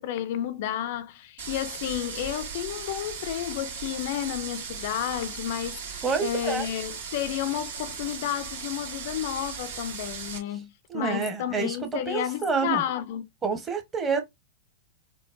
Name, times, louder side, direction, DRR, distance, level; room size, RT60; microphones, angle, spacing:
voice 1, 0.0-13.3, left 11 dB, 55° left, 0.4 m, -31 dB
sound 1, 1.4-10.4, right 6 dB, 65° right, 2.0 m, -37 dB
voice 2, 6.0-6.7 10.9-12.8 13.4-14.2, right 5 dB, 20° right, 1.0 m, -28 dB
4.4 x 2.1 x 2.5 m
hypercardioid pair, 110°, 0 cm